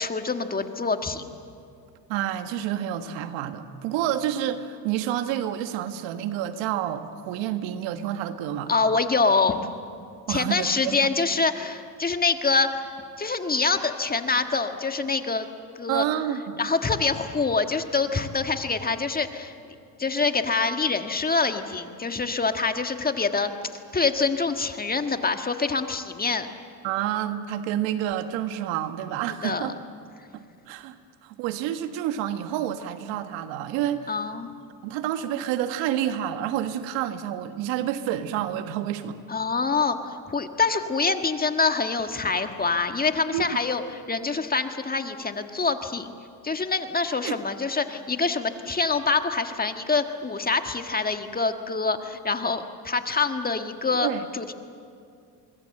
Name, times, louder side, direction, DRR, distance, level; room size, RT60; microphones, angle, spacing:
voice 1, 0.0-1.3 8.7-9.6 10.3-12.9 13.2-15.5 15.8-16.0 16.6-19.5 20.0-26.5 29.4-29.7 34.1-34.5 39.3-46.1 46.4-54.5, left 4 dB, 20° left, 7 dB, 1.6 m, -25 dB
voice 2, 2.1-8.7 10.3-11.0 15.9-16.6 26.8-29.8 30.3-31.0 31.2-34.1 34.8-39.2 43.3-43.4 47.2-47.4 54.0-54.2, right 11 dB, 70° right, 9 dB, 1.6 m, -29 dB
25.0 x 22.0 x 7.8 m, 2.4 s
supercardioid pair, 85°, 46 cm